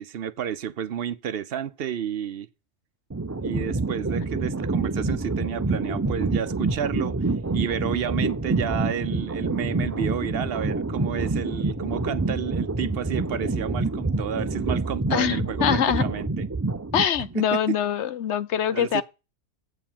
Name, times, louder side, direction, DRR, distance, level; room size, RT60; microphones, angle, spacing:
voice 1, 0.0-2.5 3.4-7.1 7.5-16.3 17.4-17.8 18.7-19.0, right 9 dB, 60° right, 0.8 m, -31 dB
sound 1, 3.1-17.3, right 3 dB, 20° right, 0.4 m, -27 dB
voice 2, 15.1-16.0 16.9-19.0, left 9 dB, 75° left, 1.0 m, -24 dB
8.0 x 4.7 x 7.3 m
omnidirectional pair, 1.2 m